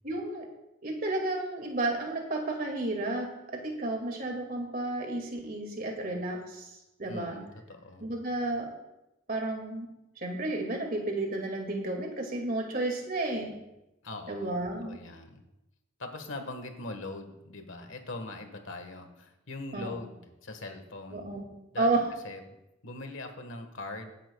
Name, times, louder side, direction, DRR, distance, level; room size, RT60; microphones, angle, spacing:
voice 1, 0.0-0.5 0.8-7.4 8.0-8.7 9.3-9.9 10.2-13.5 14.3-15.0 19.7-19.9 21.1-21.5 21.8-22.0, right 2 dB, 45° right, 2 dB, 2.1 m, -32 dB
voice 2, 7.1-8.1 14.0-14.5 14.8-15.4 16.0-21.3 21.7-21.9 22.2-22.4 22.8-24.1, left 2 dB, 65° left, 6 dB, 1.5 m, -41 dB
20.0 x 10.0 x 2.3 m, 0.93 s
head